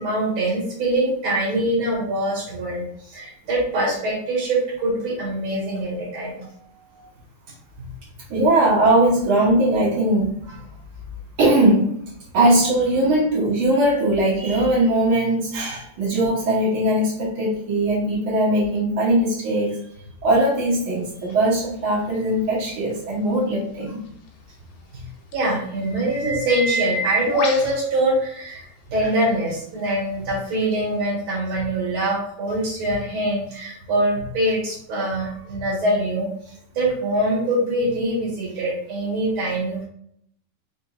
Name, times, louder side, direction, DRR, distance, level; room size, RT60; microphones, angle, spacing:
voice 1, 0.0-6.4 6.9-7.0 7.8-7.9 24.9-25.0 25.3-36.3 36.7-39.8, right 1 dB, 60° right, -5 dB, 1.4 m, -24 dB
voice 2, 8.3-10.6 11.4-11.9 12.3-19.8 20.2-24.0, right 1 dB, 85° right, -7 dB, 1.1 m, -20 dB
sound 1, 21.3-21.4 25.3-25.4 25.8-27.7 29.0-29.1 30.7-30.8, right 1 dB, 80° left, 2.3 m, -27 dB
5.2 x 2.9 x 2.4 m, 0.68 s
omnidirectional pair, 4.1 m